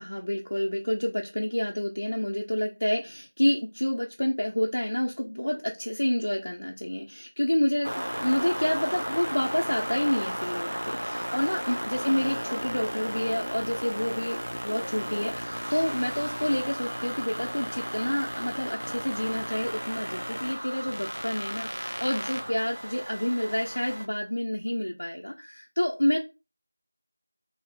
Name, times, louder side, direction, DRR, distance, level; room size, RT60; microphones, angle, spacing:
voice 1, 0.0-14.4 14.6-26.2, left 1 dB, 75° left, 0 dB, 0.4 m, -28 dB
sound 1, 7.8-24.1, equal, 90° right, 0.5 m, -34 dB
2.6 x 2.0 x 3.1 m, 0.29 s
figure-of-eight pair, 175°, 0 cm